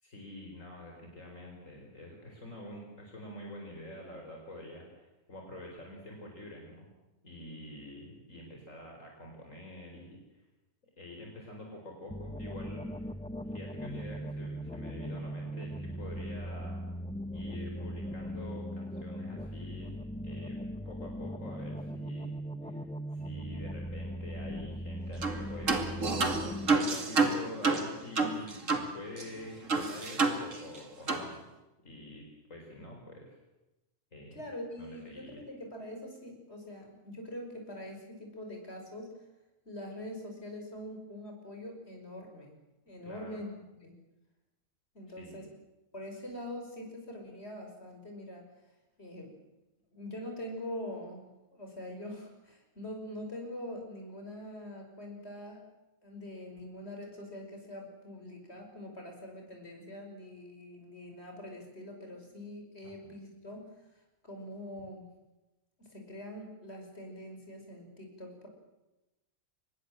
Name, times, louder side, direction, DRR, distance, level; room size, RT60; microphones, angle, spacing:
voice 1, 0.0-6.8 7.2-10.4 11.0-13.1 13.5-16.8 17.3-19.9 20.2-20.6 20.8-22.3 22.6-22.8 23.1-31.4 31.8-33.4 34.1-34.4 34.8-35.4 43.0-43.4 45.2-45.5 62.8-63.1, left 1 dB, 65° left, 1 dB, 4.8 m, -46 dB
sound 1, 12.1-26.8, equal, 10° left, 0.4 m, -39 dB
sound 2, 25.2-25.4 25.7-28.9 29.2-29.3 29.7-30.8 31.1-31.3, right 3 dB, 65° right, 2.7 m, -29 dB
voice 2, 34.3-39.1 39.6-42.6 42.9-44.0 44.9-45.5 45.9-48.5 49.0-49.4 49.9-55.6 56.0-63.7 64.2-65.0 65.8-68.5, left 1 dB, 50° left, 2 dB, 5.9 m, -44 dB
25.0 x 20.5 x 7.6 m, 1.0 s
omnidirectional pair, 1.5 m